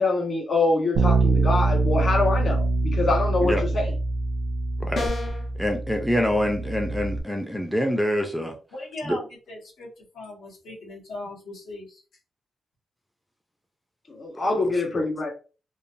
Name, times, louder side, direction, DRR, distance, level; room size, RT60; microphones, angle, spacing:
voice 1, 0.0-3.9 14.1-15.3, left 3 dB, 40° left, -3 dB, 1.4 m, -24 dB
Bass guitar, 1.0-7.2, right 3 dB, 85° right, 0.3 m, -24 dB
sound 1, 4.9-5.5, left 3 dB, 60° left, 0.8 m, -30 dB
voice 2, 5.6-8.5 9.0-9.2 14.6-14.7 15.0-15.1, equal, ahead, 4 dB, 0.3 m, -25 dB
voice 3, 8.7-12.0, left 1 dB, 90° left, -4 dB, 1.2 m, -39 dB
3.0 x 2.0 x 2.6 m, 0.36 s
wide cardioid pair, 125°, 0 cm